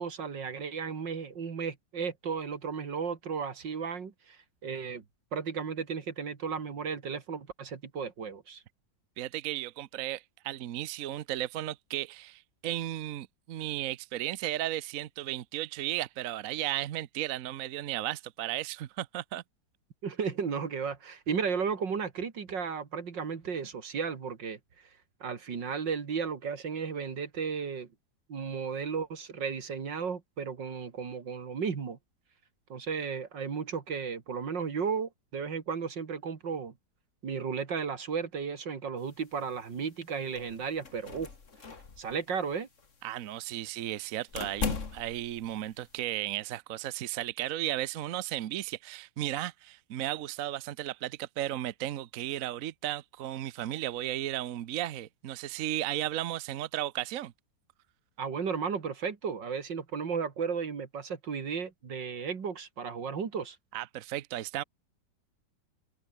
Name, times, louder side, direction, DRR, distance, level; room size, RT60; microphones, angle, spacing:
voice 1, 0.0-5.0 5.3-8.6 20.0-24.6 25.2-27.9 28.3-32.0 32.7-36.7 37.2-41.3 42.0-42.7 58.2-63.6, right 6 dB, 75° right, 2.9 m, -34 dB
voice 2, 9.2-19.4 43.0-57.3 63.7-64.6, right 13 dB, 60° right, 1.0 m, -35 dB
sound 1, 39.0-46.0, left 4 dB, 40° left, 2.5 m, -40 dB
omnidirectional pair, 2.0 m